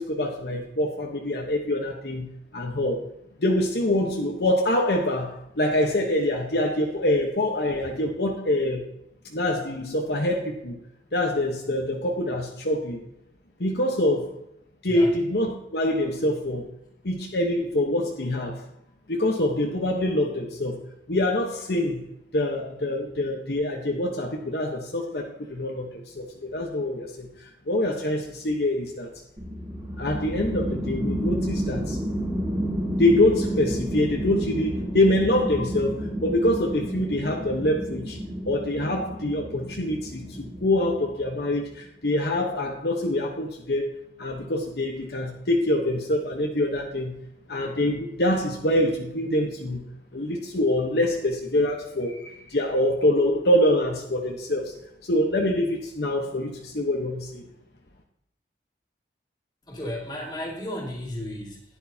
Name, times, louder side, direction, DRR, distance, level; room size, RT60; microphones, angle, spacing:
voice 1, 0.0-3.1 3.4-8.8 9.2-10.8 11.1-13.1 13.6-14.4 14.8-16.7 17.0-18.6 19.1-20.8 21.1-22.0 22.3-29.1 30.0-32.0 33.0-38.2 38.4-47.2 47.5-49.8 50.1-54.7 55.0-57.5, left 1 dB, 60° left, 1 dB, 1.1 m, -25 dB
sound 1, 29.4-41.4, equal, 15° right, 2.2 m, -31 dB
voice 2, 59.7-61.6, left 1 dB, 20° left, -3 dB, 2.2 m, -34 dB
11.5 x 10.0 x 2.8 m, 0.76 s
head